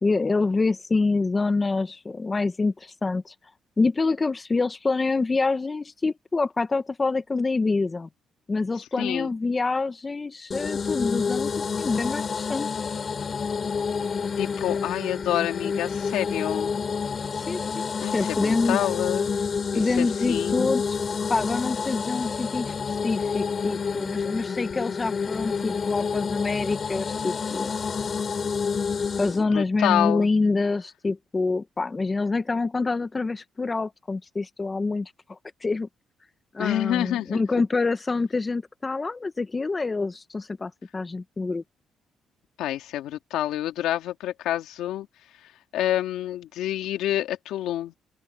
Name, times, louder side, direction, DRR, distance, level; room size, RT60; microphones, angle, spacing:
voice 1, 0.0-3.3 3.8-8.1 8.5-12.7 17.4-18.8 19.7-21.0 21.3-27.7 29.2-35.9 36.5-41.6, left 3 dB, 25° left, 1.2 m, -26 dB
voice 2, 9.0-9.3 14.4-16.7 18.0-19.4 19.7-20.8 29.4-30.3 36.6-37.4 42.6-45.1 45.4-48.0, left 13 dB, 90° left, 2.5 m, -28 dB
sound 1, 10.5-29.4, left 5 dB, 40° left, 5.4 m, -29 dB
open air
cardioid pair, 90°, 0 cm